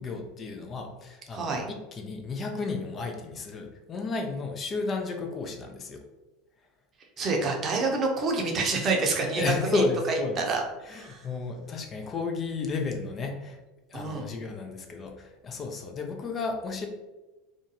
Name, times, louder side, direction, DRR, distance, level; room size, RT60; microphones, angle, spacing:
voice 1, 0.0-6.0 9.4-10.5 10.9-13.6 13.9-16.9, left 4 dB, 35° left, 4 dB, 0.4 m, -33 dB
voice 2, 1.3-1.7 7.2-10.6 10.9-11.3 13.9-14.3, right 3 dB, 40° right, 1 dB, 0.6 m, -28 dB
2.5 x 2.2 x 2.7 m, 1.1 s
hypercardioid pair, 90°, 0 cm